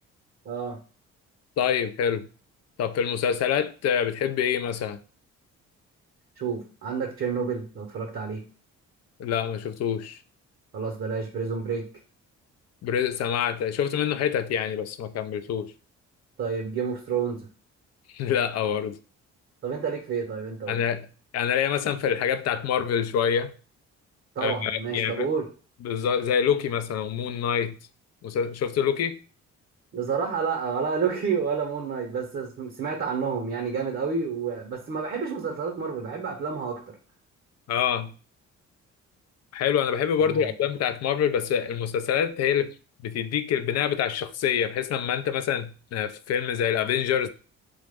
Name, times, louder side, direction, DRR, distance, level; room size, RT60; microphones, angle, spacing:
voice 1, 0.4-0.8 6.4-8.4 10.7-11.8 16.4-17.5 19.6-20.8 24.4-25.5 29.9-37.0 40.2-40.5, right 6 dB, 45° right, 0.7 m, -29 dB
voice 2, 1.6-2.3 2.8-5.0 9.2-10.2 12.8-15.7 18.1-19.0 20.7-21.1 21.3-23.5 24.4-25.3 25.8-27.8 28.2-29.2 37.7-38.1 39.5-42.8 43.0-47.3, left 8 dB, 60° left, 0.4 m, -26 dB
2.9 x 2.1 x 3.4 m
cardioid pair, 90°, 30 cm